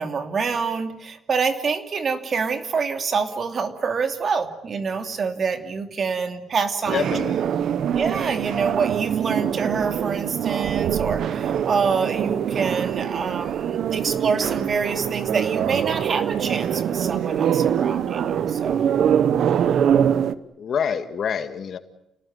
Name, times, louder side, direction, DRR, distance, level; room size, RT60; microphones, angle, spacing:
voice 1, 0.0-7.1 7.9-18.8, right 5 dB, 45° right, 7 dB, 2.8 m, -26 dB
voice 2, 6.9-7.4 20.6-21.8, left 7 dB, 60° left, 10 dB, 1.8 m, -26 dB
sound 1, 6.9-20.3, right 9 dB, 70° right, 1.0 m, -24 dB
30.0 x 18.5 x 9.5 m, 0.88 s
cardioid pair, 90°, 0 cm